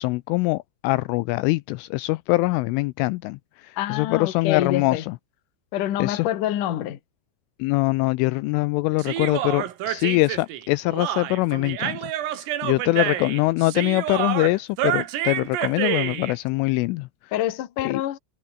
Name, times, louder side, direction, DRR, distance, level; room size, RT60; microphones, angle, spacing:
voice 1, 0.0-5.2 6.0-6.3 7.6-17.3 17.8-18.0, left 22 dB, 85° left, 3.0 m, -23 dB
voice 2, 3.8-5.0 5.7-7.0 17.3-18.2, left 12 dB, 55° left, 2.5 m, -26 dB
Human voice, 9.0-16.4, right 12 dB, 80° right, 4.7 m, -28 dB
omnidirectional pair, 5.9 m